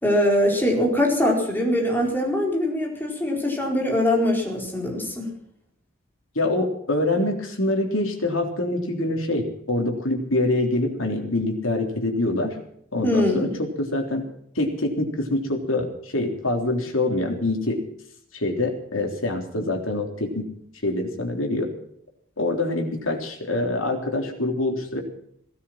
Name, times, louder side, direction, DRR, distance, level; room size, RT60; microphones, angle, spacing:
voice 1, 0.0-5.3 13.0-13.5, left 1 dB, 10° left, -1 dB, 4.5 m, -22 dB
voice 2, 6.4-12.6 12.9-14.3 14.6-17.8 18.3-20.5 20.8-21.7 22.4-25.0, left 2 dB, 75° left, 2 dB, 3.6 m, -25 dB
18.5 x 13.0 x 5.9 m, 0.69 s
head